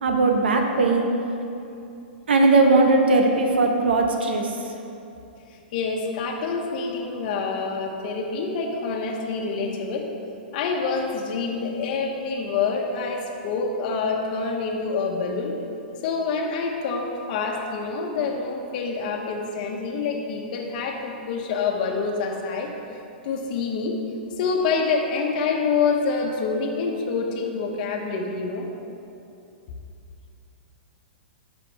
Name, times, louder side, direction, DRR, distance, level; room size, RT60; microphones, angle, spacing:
voice 1, 0.0-1.1 2.3-4.5, right 3 dB, 80° right, 3 dB, 1.1 m, -19 dB
voice 2, 5.7-10.1 10.5-15.6 16.0-24.0 24.4-28.7, left 4 dB, 55° left, 0 dB, 1.0 m, -27 dB
10.5 x 6.1 x 3.4 m, 2.7 s
hypercardioid pair, 125°, 6 cm